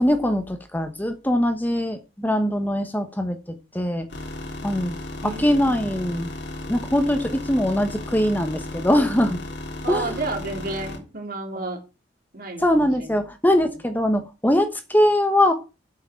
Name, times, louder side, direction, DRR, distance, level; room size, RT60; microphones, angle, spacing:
voice 1, 0.0-3.4 3.7-4.1 4.6-5.0 5.2-6.3 6.7-9.4 9.9-10.2 12.6-15.5, left 1 dB, 10° left, 7 dB, 1.1 m, -22 dB
sound 1, 4.1-11.0, left 2 dB, 90° left, 3.4 m, -35 dB
voice 2, 5.2-5.8 9.8-11.8 12.3-13.1, right 3 dB, 55° right, 3 dB, 3.2 m, -31 dB
8.3 x 6.8 x 7.7 m, 0.31 s
head